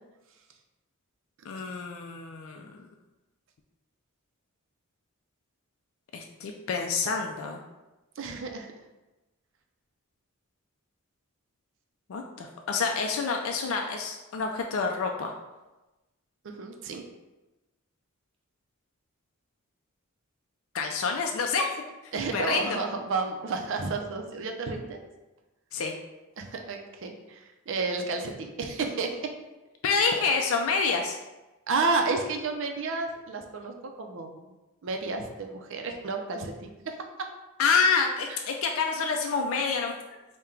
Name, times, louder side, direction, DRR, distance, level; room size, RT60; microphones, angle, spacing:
voice 1, 1.5-2.9 6.1-7.6 12.1-15.3 20.7-21.7 22.1-22.7 25.7-25.9 29.8-31.2 37.6-40.0, left 5 dB, 65° left, 2 dB, 0.4 m, -28 dB
voice 2, 8.2-8.7 16.4-17.0 22.1-25.0 26.4-29.3 31.7-34.4 34.8-37.3 38.3-38.4, right 3 dB, 60° right, 4 dB, 0.5 m, -31 dB
4.4 x 2.2 x 3.7 m, 1.1 s
head